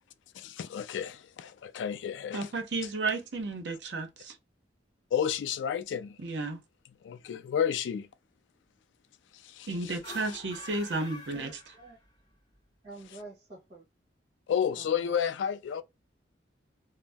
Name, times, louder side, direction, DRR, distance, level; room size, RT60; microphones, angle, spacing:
voice 1, 0.3-2.5 5.1-6.2 7.0-8.1 9.3-10.0 14.5-15.8, left 8 dB, 85° left, 0.3 m, -31 dB
voice 2, 2.3-4.4 6.2-6.6 9.7-11.6, right 3 dB, 70° right, 0.7 m, -33 dB
sound 1, 9.9-12.3, left 1 dB, 25° left, 1.2 m, -47 dB
voice 3, 11.3-12.0 12.8-13.8 14.7-15.2, right 3 dB, 35° right, 1.0 m, -48 dB
2.6 x 2.0 x 3.3 m
head